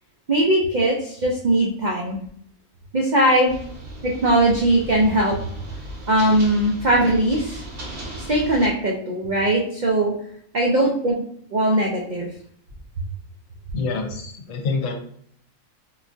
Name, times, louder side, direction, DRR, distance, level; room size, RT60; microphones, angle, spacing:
voice 1, 0.3-2.2 2.9-3.5 4.0-5.4 6.1-7.6 8.2-10.1 10.5-11.1 11.5-12.3, right 1 dB, 70° right, -2 dB, 0.4 m, -20 dB
sound 1, 3.4-8.7, right 1 dB, 50° right, 0.9 m, -36 dB
voice 2, 13.7-14.9, left 4 dB, 70° left, 3 dB, 1.0 m, -26 dB
3.9 x 2.3 x 2.5 m, 0.64 s
omnidirectional pair, 1.5 m